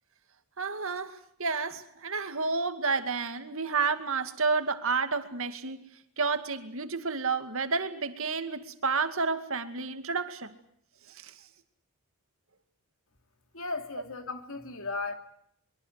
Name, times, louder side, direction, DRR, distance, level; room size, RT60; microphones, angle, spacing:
voice 1, 0.6-5.8 6.2-10.5 11.1-11.3, right 4 dB, 65° right, 2.3 m, -30 dB
voice 2, 13.5-15.1, left 3 dB, 65° left, 2.9 m, -36 dB
23.5 x 23.5 x 8.2 m
head